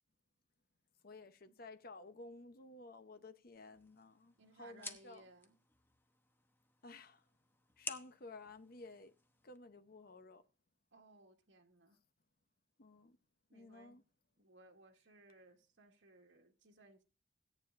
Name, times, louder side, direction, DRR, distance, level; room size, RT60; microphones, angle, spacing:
voice 1, 1.0-5.3 6.8-7.3 7.8-9.1 9.4-10.5 12.8-13.2 13.5-14.0, left 3 dB, 55° left, 0.9 m, -54 dB
sound 1, 3.5-9.6, left 3 dB, 10° left, 0.9 m, -53 dB
voice 2, 4.4-5.6 10.9-12.0 13.5-14.0 14.4-17.0, right 2 dB, 80° right, 1.7 m, -63 dB
17.0 x 9.3 x 2.6 m
head